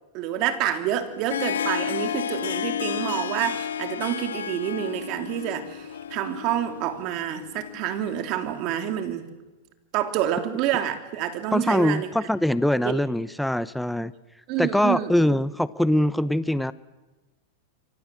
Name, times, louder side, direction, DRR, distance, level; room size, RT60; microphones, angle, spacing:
voice 1, 0.1-9.3 9.9-12.1 12.8-12.9 14.5-15.1, right 11 dB, 50° right, 8 dB, 3.2 m, -28 dB
Harp, 1.0-8.8, left 9 dB, 90° left, 1.3 m, -32 dB
voice 2, 11.5-14.1 14.6-16.7, left 1 dB, ahead, 16 dB, 0.8 m, -23 dB
28.0 x 24.0 x 7.8 m, 1.2 s
hypercardioid pair, 120°, 0 cm